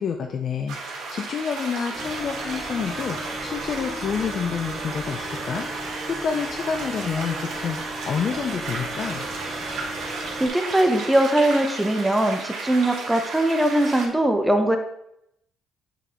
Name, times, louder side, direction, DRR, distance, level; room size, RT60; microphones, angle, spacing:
voice 1, 0.0-9.3, left 6 dB, 45° left, 5 dB, 0.5 m, -29 dB
sound 1, 0.7-14.1, right 3 dB, 85° right, 1.8 m, -34 dB
sound 2, 1.9-10.5, right 1 dB, 25° right, 2.7 m, -35 dB
voice 2, 10.4-14.8, right 1 dB, 5° right, 5 dB, 0.7 m, -21 dB
8.2 x 4.0 x 3.6 m, 0.77 s
cardioid pair, 130°, 0 cm